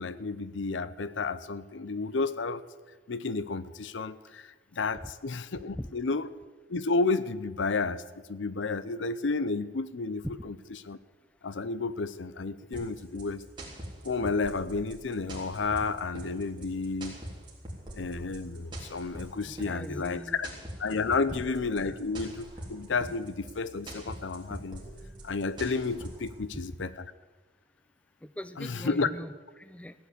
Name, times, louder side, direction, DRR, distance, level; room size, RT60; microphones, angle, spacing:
voice 1, 0.0-2.6 3.1-4.5 4.7-6.3 6.7-8.0 8.3-10.5 10.8-11.0 11.4-13.4 14.0-17.1 17.9-20.5 20.8-24.8 25.2-27.1 28.6-29.1, left 4 dB, 80° left, 16 dB, 0.6 m, -31 dB
sound 1, 12.7-26.3, right 1 dB, 25° right, 3.5 m, -43 dB
voice 2, 19.5-20.4 26.5-26.6 28.2-29.9, equal, 5° left, 13 dB, 0.4 m, -41 dB
15.5 x 9.5 x 8.4 m, 1.3 s
head